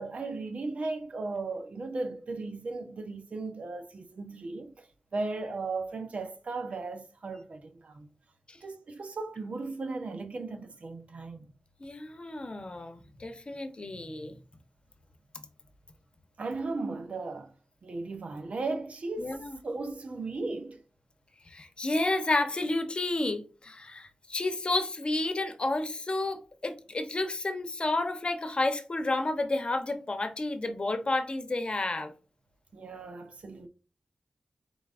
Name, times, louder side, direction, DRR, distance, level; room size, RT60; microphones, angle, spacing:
voice 1, 0.0-4.9 5.1-8.1 8.6-11.5 16.4-17.5 17.8-20.8 32.7-33.7, right 3 dB, 70° right, 0.8 m, -36 dB
voice 2, 11.8-14.3 19.2-19.6 21.5-32.1, left 2 dB, 50° left, 0.8 m, -31 dB
4.5 x 4.0 x 2.5 m
cardioid pair, 40°, 2 cm